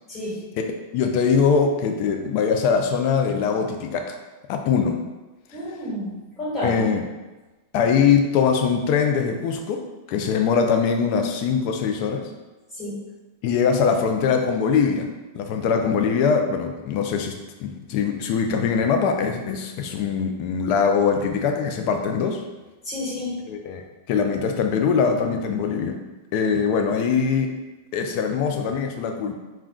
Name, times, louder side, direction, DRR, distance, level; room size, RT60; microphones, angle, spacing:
voice 1, 0.1-0.4 5.5-6.8 12.7-13.0 22.8-23.3, left 1 dB, 25° left, -7 dB, 1.4 m, -30 dB
voice 2, 0.9-4.2 4.5-5.0 6.6-7.0 7.7-12.3 13.4-22.4 23.5-26.0 26.3-27.5 27.9-29.3, left 6 dB, 55° left, 4 dB, 0.4 m, -22 dB
2.3 x 2.2 x 3.7 m, 1.2 s
hypercardioid pair, 125°, 0 cm